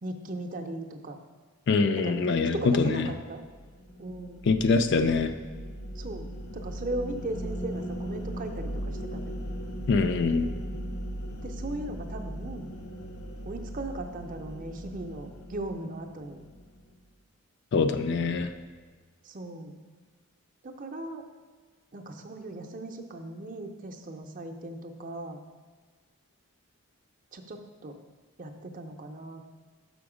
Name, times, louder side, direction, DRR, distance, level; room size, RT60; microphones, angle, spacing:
voice 1, 0.0-1.2 2.0-3.4 4.0-4.4 6.0-6.3 6.5-9.4 11.4-12.7 13.4-16.4 19.2-19.8 20.6-21.2 21.9-25.4 27.3-28.0 28.4-29.4, right 2 dB, 35° right, 5 dB, 0.5 m, -38 dB
voice 2, 1.7-3.1 4.5-5.3 9.9-10.5 17.7-18.5, left 4 dB, 50° left, 9 dB, 0.3 m, -24 dB
sound 1, 3.4-17.0, equal, 80° left, 0.7 m, -38 dB
6.9 x 5.1 x 4.9 m, 1.5 s
head